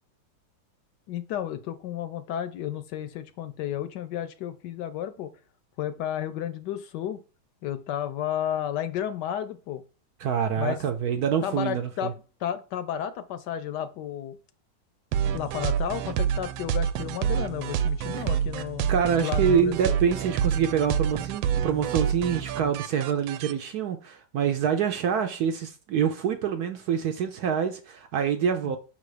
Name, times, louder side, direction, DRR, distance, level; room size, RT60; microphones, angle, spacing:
voice 1, 1.1-5.3 5.8-7.2 7.6-9.8 10.6-10.8 11.4-14.4 15.3-20.0 28.6-28.7, left 10 dB, 75° left, 1.1 m, -32 dB
voice 2, 10.2-12.1 18.9-28.8, right 7 dB, 70° right, 1.0 m, -26 dB
sound 1, 15.1-23.5, right 8 dB, 85° right, 1.3 m, -28 dB
5.6 x 3.8 x 4.8 m
omnidirectional pair, 2.1 m